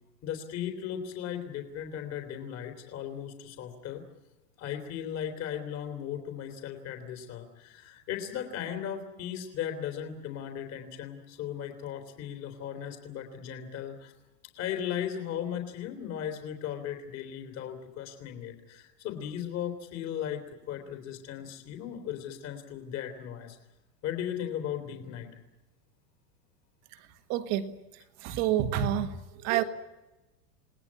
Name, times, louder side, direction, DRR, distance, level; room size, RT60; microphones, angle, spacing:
voice 1, 0.2-4.0 4.6-14.1 14.6-23.6 24.0-25.3, left 9 dB, 30° left, 3.4 m, -37 dB
voice 2, 26.9-29.6, right 10 dB, 35° right, 1.6 m, -30 dB
29.0 x 19.0 x 8.7 m
supercardioid pair, 160°, 48 cm